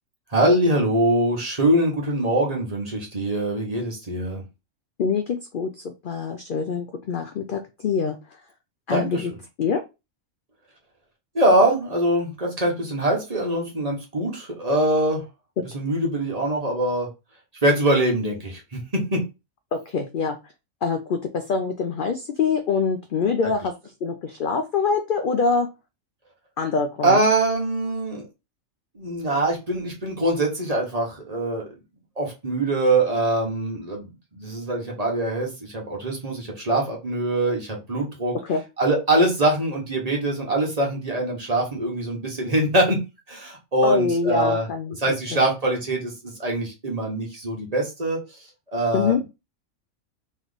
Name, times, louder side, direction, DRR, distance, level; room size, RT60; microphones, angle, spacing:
voice 1, 0.3-4.4 8.9-9.3 11.3-15.2 15.7-17.1 17.6-19.2 23.4-23.5 27.0-28.3 28.9-31.7 32.2-38.3 38.8-43.0 43.3-44.7 45.0-48.2 48.7-49.2, right 1 dB, 30° right, -1 dB, 1.1 m, -23 dB
voice 2, 5.0-8.2 8.9-9.3 9.6-9.8 19.7-20.4 20.8-23.7 24.0-25.7 26.6-27.2 38.4-38.6 43.8-45.4 48.9-49.2, left 5 dB, 75° left, 6 dB, 0.4 m, -25 dB
3.2 x 3.1 x 3.9 m, 0.26 s
omnidirectional pair, 1.5 m